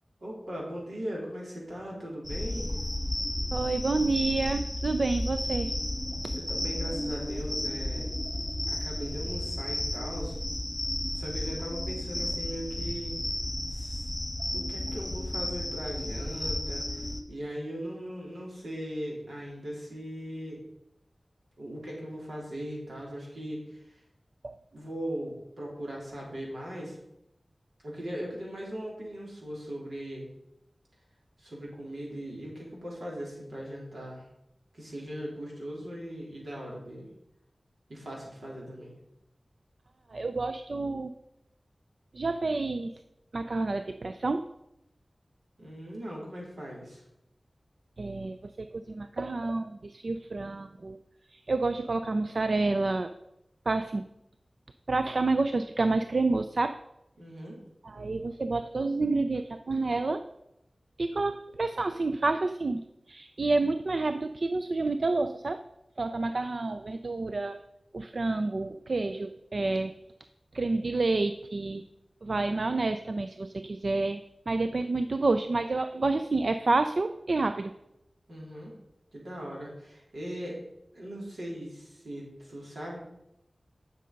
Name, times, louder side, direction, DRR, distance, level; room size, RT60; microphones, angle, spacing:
voice 1, 0.2-2.8 6.3-8.1 8.7-10.3 11.1-13.2 13.7-14.1 14.5-20.6 21.6-24.0 24.7-27.0 27.8-30.3 31.4-34.3 34.7-37.1 37.9-38.9 45.6-47.0 57.2-57.6 78.3-78.7 79.1-80.6 80.9-83.0, equal, 90° right, -4 dB, 3.6 m, -39 dB
sound 1, 2.2-17.2, left 1 dB, 15° left, 1.4 m, -33 dB
voice 2, 3.5-5.7 6.2-6.3 24.4-24.6 40.1-41.1 42.1-43.0 43.3-44.5 48.0-51.0 51.3-53.1 53.7-54.0 54.9-56.8 57.8-60.2 61.0-65.6 66.0-67.6 67.9-69.9 70.5-71.8 72.2-74.2 74.5-77.7, right 3 dB, 70° right, 9 dB, 0.5 m, -29 dB
10.0 x 6.5 x 5.3 m, 0.84 s
wide cardioid pair, 55°, 0 cm